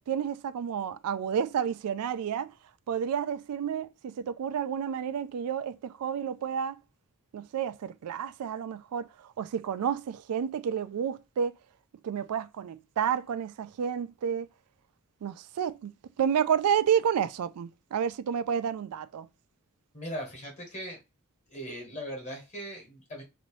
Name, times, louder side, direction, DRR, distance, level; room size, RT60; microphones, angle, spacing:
voice 1, 0.1-2.5 2.9-6.8 7.3-11.6 12.0-14.5 15.2-15.9 16.2-19.3, right 8 dB, 90° right, 0.3 m, -30 dB
voice 2, 19.9-21.0 21.5-23.2, equal, 30° left, 1.4 m, -39 dB
3.0 x 2.5 x 3.1 m
head